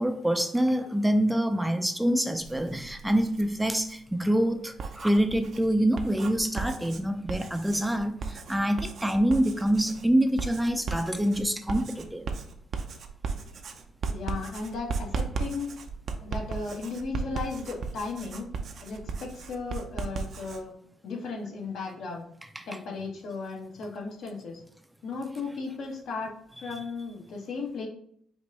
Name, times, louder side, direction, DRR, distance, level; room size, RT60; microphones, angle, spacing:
voice 1, 0.0-12.3 22.6-22.7, right 1 dB, 5° right, 0.4 m, -26 dB
Writing, 2.4-4.0 4.6-20.6, right 4 dB, 60° right, 0.5 m, -36 dB
voice 2, 14.1-15.7 16.2-18.5 18.8-20.7 21.0-22.2 22.7-24.6 25.0-27.9, left 4 dB, 75° left, 1.1 m, -35 dB
5.1 x 2.6 x 3.3 m
cardioid pair, 90°, 0 cm